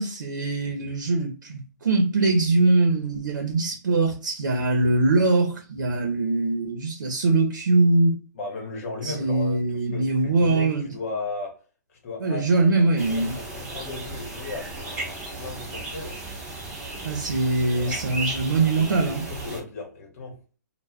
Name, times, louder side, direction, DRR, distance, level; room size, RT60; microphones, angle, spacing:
voice 1, 0.0-8.2 9.0-10.9 12.2-13.4 17.0-19.2, right 2 dB, 80° right, 0.7 m, -22 dB
voice 2, 8.3-11.6 12.0-16.2 16.4-16.6 17.7-18.0 19.0-20.4, left 3 dB, 50° left, 1.0 m, -36 dB
sound 1, 13.0-19.6, right 2 dB, 10° right, 0.8 m, -35 dB
2.2 x 2.2 x 3.4 m
hypercardioid pair, 145°, 10 cm